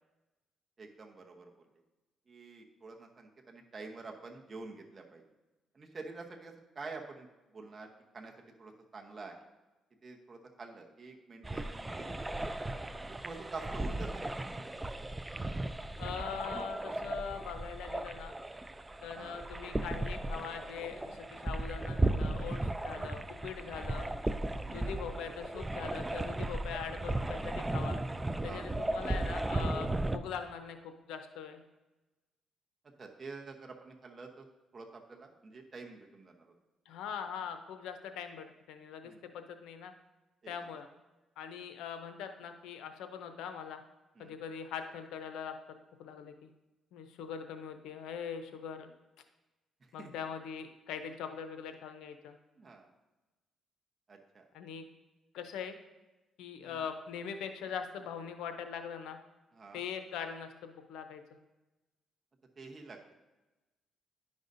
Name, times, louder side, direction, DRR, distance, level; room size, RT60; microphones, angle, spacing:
voice 1, 0.8-1.5 2.3-5.2 5.7-7.3 7.5-8.3 8.6-9.5 10.0-12.1 13.0-14.4 19.1-19.4 24.5-24.9 28.4-28.7 33.0-34.5 34.7-36.5 39.0-39.2 40.4-40.7 44.2-44.4 50.0-50.1 52.6-52.9 54.1-54.4 56.6-56.8 59.5-59.8 62.6-63.0, right 3 dB, 35° right, 2 dB, 0.9 m, -47 dB
sound 1, 11.4-30.2, right 1 dB, 15° right, 0.3 m, -36 dB
voice 2, 16.0-18.3 19.0-24.1 24.7-28.0 28.4-31.6 36.9-39.9 40.5-40.9 41.4-43.8 44.2-45.5 46.0-46.5 46.9-48.9 49.9-52.4 54.5-54.8 55.3-55.8 56.4-59.2 59.7-61.4, left 7 dB, 90° left, 7 dB, 0.6 m, -42 dB
10.5 x 5.3 x 2.6 m, 1.1 s
cardioid pair, 90°, 0 cm